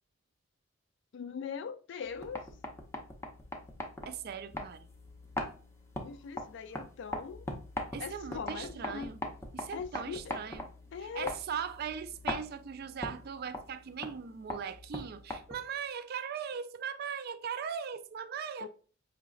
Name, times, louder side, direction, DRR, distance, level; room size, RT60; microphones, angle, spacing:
voice 1, 1.1-2.5 6.0-7.5 8.0-9.1 9.7-10.4 10.9-11.3 18.6-18.7, left 6 dB, 60° left, 0.3 m, -41 dB
sound 1, 2.1-15.8, left 1 dB, 15° left, 0.5 m, -42 dB
voice 2, 4.1-4.9 7.9-9.2 9.5-10.6 11.1-18.7, right 7 dB, 50° right, 0.3 m, -39 dB
4.8 x 2.9 x 2.4 m
head